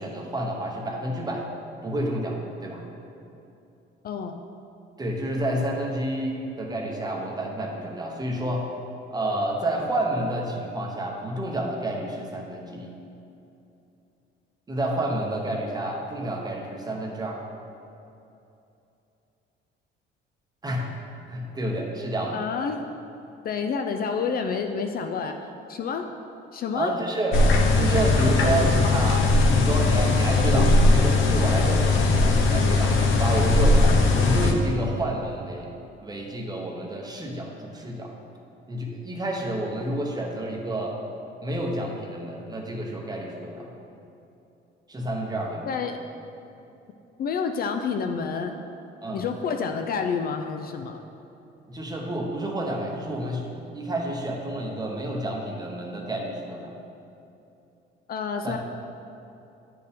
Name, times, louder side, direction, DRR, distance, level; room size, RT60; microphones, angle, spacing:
voice 1, 0.0-1.5 1.8-2.8 5.0-8.7 9.1-13.0 14.7-17.4 20.6-20.9 21.3-22.4 26.7-27.4 27.8-33.8 34.1-35.7 36.0-38.1 38.7-41.0 41.4-43.7 44.9-45.7 49.0-49.2 51.7-56.7 58.4-58.6, right 1 dB, 20° right, 0 dB, 0.8 m, -29 dB
voice 2, 4.0-4.4 22.3-22.8 23.4-25.3 25.7-26.1 26.5-26.9 45.7-46.0 47.2-48.6 49.1-51.1 58.1-58.6, left 6 dB, 45° left, 5 dB, 0.4 m, -29 dB
sound 1, 27.3-34.5, left 3 dB, 70° left, 0.7 m, -19 dB
9.1 x 4.4 x 3.5 m, 2.8 s
cardioid pair, 125°, 21 cm